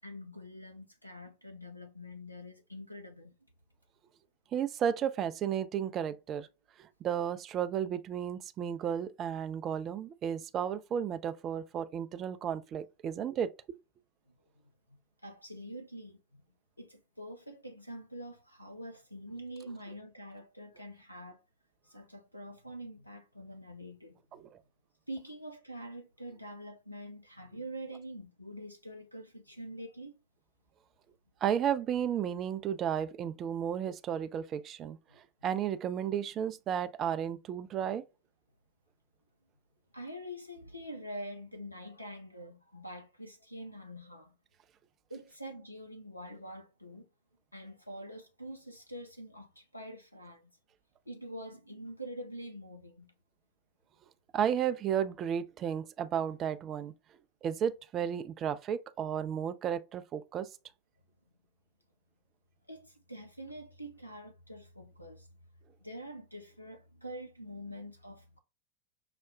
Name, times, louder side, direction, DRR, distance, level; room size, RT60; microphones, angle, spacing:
voice 1, 0.0-3.3 15.2-16.4 16.8-21.4 21.8-24.2 25.1-30.1 39.9-44.3 45.1-47.1 47.5-50.5 51.1-53.1 62.7-65.3 65.8-68.4, equal, 85° left, 0.4 m, -45 dB
voice 2, 4.5-6.5 7.0-13.5 24.3-24.4 31.4-35.0 35.4-38.0 54.3-56.9 57.4-60.5, right 8 dB, 30° right, 0.4 m, -33 dB
5.7 x 2.1 x 2.4 m
figure-of-eight pair, 90°, 0 cm